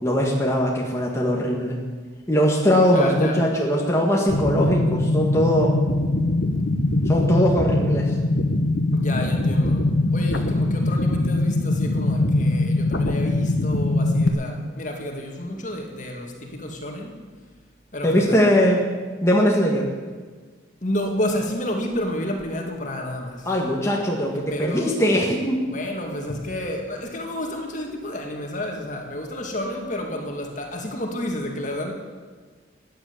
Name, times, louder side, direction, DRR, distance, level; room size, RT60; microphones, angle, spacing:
voice 1, 0.0-1.8 2.3-5.8 7.1-8.2 18.0-18.8 19.2-19.9 23.5-25.6, equal, 15° left, -2 dB, 1.8 m, -20 dB
voice 2, 2.8-3.4 6.5-6.7 8.9-9.8 10.1-17.2 17.9-18.5 20.8-23.5 24.5-24.9 25.7-31.9, left 1 dB, 40° left, 2 dB, 2.2 m, -30 dB
sound 1, 4.3-14.3, left 2 dB, 60° left, 1.3 m, -22 dB
15.5 x 10.5 x 8.6 m, 1.5 s
head